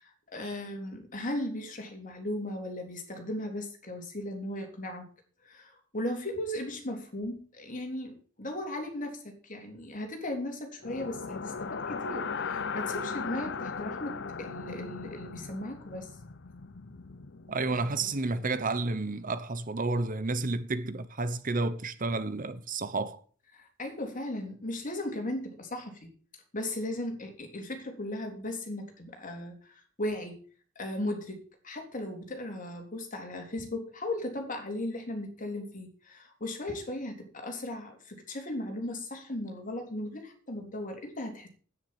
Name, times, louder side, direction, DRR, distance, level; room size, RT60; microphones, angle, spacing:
voice 1, 0.0-5.1 5.4-16.1 23.5-26.1 26.5-30.4 30.8-41.5, left 1 dB, 40° left, 3.6 m, -37 dB
sound 1, 10.8-18.8, left 5 dB, 60° left, 0.8 m, -38 dB
voice 2, 17.5-23.2, right 3 dB, 45° right, 1.0 m, -31 dB
10.5 x 9.7 x 7.3 m
head